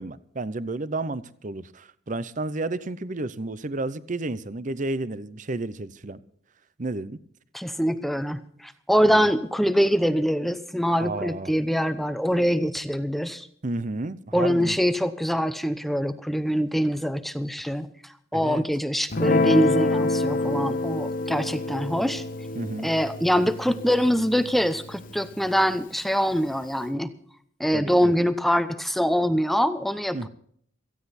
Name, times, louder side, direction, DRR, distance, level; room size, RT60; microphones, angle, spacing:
voice 1, 0.0-6.2 6.8-7.2 9.0-9.3 11.0-11.5 13.6-14.7 18.3-18.6 22.6-22.9 27.7-28.1 30.1-30.3, right 2 dB, 40° right, 0.7 m, -31 dB
voice 2, 7.5-13.5 14.3-17.9 18.3-22.2 22.8-27.1 27.6-30.3, equal, ahead, 0.8 m, -24 dB
Guitar, 19.1-25.7, left 2 dB, 45° left, 0.9 m, -27 dB
17.5 x 15.0 x 4.2 m
head